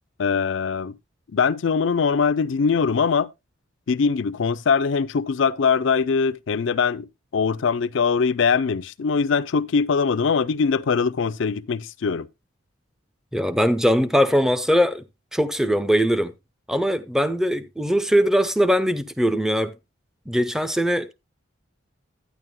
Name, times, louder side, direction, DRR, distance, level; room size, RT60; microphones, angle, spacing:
voice 1, 0.2-0.9 1.3-3.3 3.9-7.1 7.3-12.3, left 5 dB, 70° left, 0.5 m, -22 dB
voice 2, 13.3-15.0 15.3-16.3 16.7-19.7 20.3-21.1, equal, 5° right, 0.5 m, -21 dB
12.5 x 9.5 x 2.2 m
head